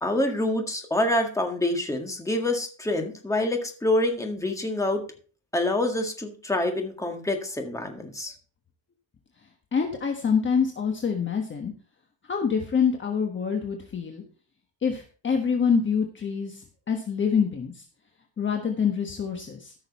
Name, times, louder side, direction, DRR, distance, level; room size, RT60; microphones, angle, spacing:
voice 1, 0.0-5.0 5.5-8.3, left 1 dB, 5° left, 3 dB, 1.8 m, -26 dB
voice 2, 9.7-11.7 12.3-14.2 14.8-17.8 18.4-19.7, left 6 dB, 25° left, 3 dB, 1.3 m, -26 dB
14.5 x 6.4 x 4.2 m, 0.40 s
cardioid pair, 150°, 45 cm